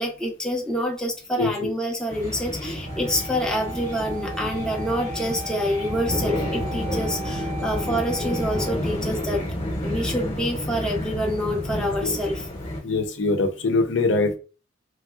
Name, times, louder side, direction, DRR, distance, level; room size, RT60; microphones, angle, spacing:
voice 1, 0.0-9.4 9.8-12.5, equal, 5° left, 0.5 m, -27 dB
voice 2, 1.4-1.7 12.0-12.2 12.8-14.4, left 3 dB, 75° left, 0.5 m, -23 dB
sound 1, 2.1-12.8, left 1 dB, 35° left, 0.9 m, -30 dB
Wind instrument woodwind instrument, 2.8-8.8, right 2 dB, 70° right, 0.8 m, -38 dB
3.1 x 2.6 x 2.3 m
head